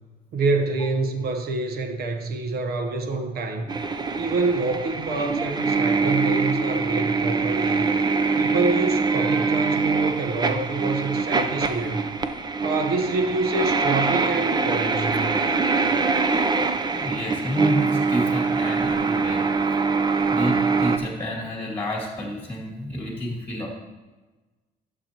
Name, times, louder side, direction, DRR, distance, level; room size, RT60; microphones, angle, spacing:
voice 1, 0.3-3.7 4.2-7.9 8.4-12.1 12.6-15.4, right 3 dB, 65° right, 6 dB, 1.0 m, -27 dB
sound 1, 3.7-21.0, right 4 dB, 25° right, 0.6 m, -23 dB
voice 2, 16.9-19.4 20.3-23.7, left 1 dB, 10° left, -1 dB, 2.2 m, -29 dB
12.0 x 6.9 x 2.9 m, 1.2 s
cardioid pair, 110°, 17 cm